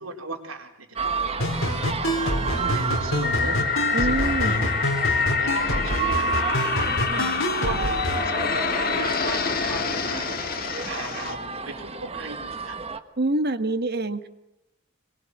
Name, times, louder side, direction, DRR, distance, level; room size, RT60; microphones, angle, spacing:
voice 1, 0.0-4.7 5.4-7.1 7.4-7.9 8.2-12.8, right 2 dB, 80° right, 3 dB, 4.3 m, -37 dB
sound 1, 1.0-13.0, right 4 dB, 30° right, 1.3 m, -31 dB
sound 2, 1.4-8.2, left 1 dB, 70° left, 4.3 m, -27 dB
sound 3, 3.2-11.4, left 5 dB, 45° left, 1.8 m, -26 dB
voice 2, 3.9-4.7 7.1-7.4 13.2-14.3, right 2 dB, 50° right, 10 dB, 1.5 m, -26 dB
25.0 x 22.0 x 7.8 m, 0.87 s
head